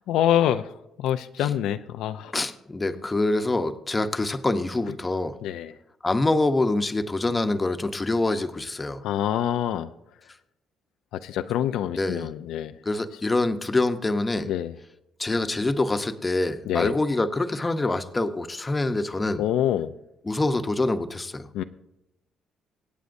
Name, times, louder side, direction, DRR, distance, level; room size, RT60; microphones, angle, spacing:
voice 1, 0.1-0.6 1.0-2.3 5.4-5.7 9.0-9.9 11.2-12.7 14.5-14.7 16.7-16.9 19.4-19.9 21.5-21.6, left 11 dB, 90° left, 10 dB, 0.4 m, -25 dB
voice 2, 2.3-5.4 6.0-9.0 11.9-12.3 12.9-14.5 15.2-19.4 20.2-21.5, left 2 dB, 20° left, 9 dB, 0.8 m, -25 dB
24.5 x 8.3 x 2.6 m, 0.88 s
cardioid pair, 90°, 0 cm